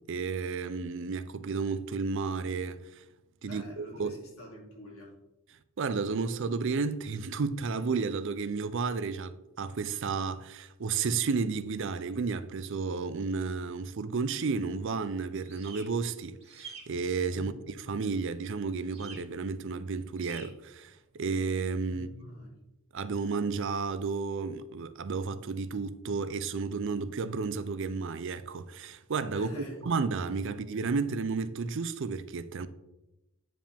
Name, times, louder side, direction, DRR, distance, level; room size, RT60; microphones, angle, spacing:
voice 1, 0.1-3.0 3.4-4.1 5.8-17.5 17.9-22.1 22.9-29.5 29.8-32.7, right 4 dB, 60° right, 0.5 m, -32 dB
voice 2, 3.4-5.1 17.3-17.6 21.9-22.6 29.3-29.9 30.3-30.5, left 1 dB, 80° left, 2.7 m, -47 dB
sound 1, 15.4-15.8 16.4-16.8 18.9-19.2 20.2-20.4, right 4 dB, 30° right, 2.5 m, -46 dB
9.0 x 5.0 x 3.5 m
head